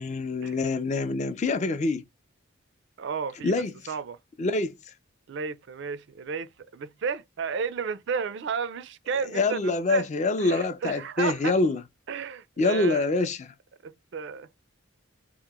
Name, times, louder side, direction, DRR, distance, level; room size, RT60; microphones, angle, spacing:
voice 1, 0.0-2.0 3.4-3.7 4.4-4.8 9.3-11.8 12.6-13.5, left 3 dB, 35° left, 0.4 m, -25 dB
voice 2, 3.0-3.6 3.9-4.2 5.3-10.1 10.4-11.5 12.1-13.1 13.8-14.5, right 5 dB, 55° right, 0.3 m, -33 dB
2.9 x 2.0 x 3.4 m
head